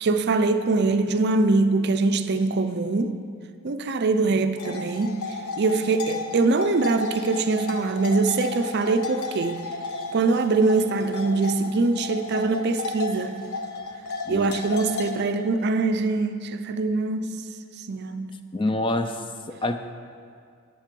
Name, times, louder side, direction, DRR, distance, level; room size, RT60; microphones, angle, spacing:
voice 1, 0.0-3.1 3.6-5.2 5.6-9.6 10.1-13.4 14.3-17.4 17.8-18.3, right 3 dB, 50° right, 8 dB, 0.5 m, -23 dB
sound 1, 4.6-15.1, left 3 dB, 75° left, 0.7 m, -33 dB
voice 2, 18.5-19.8, left 2 dB, 20° left, 8 dB, 0.4 m, -27 dB
10.0 x 7.5 x 5.3 m, 2.2 s
head